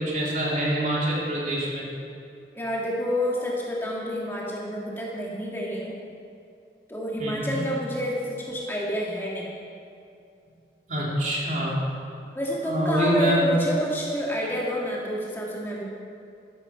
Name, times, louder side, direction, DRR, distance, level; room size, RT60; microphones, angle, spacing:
voice 1, 0.0-1.9 7.2-7.6 10.9-11.8 12.6-13.6, equal, 45° right, -4 dB, 3.1 m, -25 dB
voice 2, 2.5-6.0 6.9-9.5 12.3-15.8, equal, 15° left, -4 dB, 1.8 m, -28 dB
13.0 x 12.0 x 5.8 m, 2.5 s
head